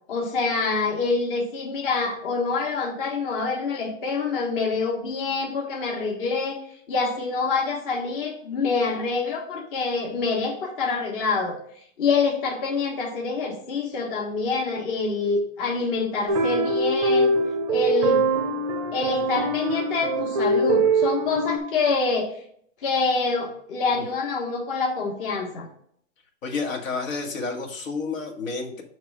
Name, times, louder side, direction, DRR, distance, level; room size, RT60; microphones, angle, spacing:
voice 1, 0.1-6.6 6.9-11.6 12.0-17.3 17.7-18.2 18.9-22.3 22.8-25.7, left 4 dB, 40° left, -1 dB, 1.4 m, -26 dB
sound 1, 16.3-21.6, right 2 dB, 25° right, 0.5 m, -23 dB
voice 2, 26.4-28.8, left 4 dB, 70° left, 1 dB, 1.6 m, -30 dB
6.6 x 3.3 x 4.8 m, 0.64 s
hypercardioid pair, 155°, 40 cm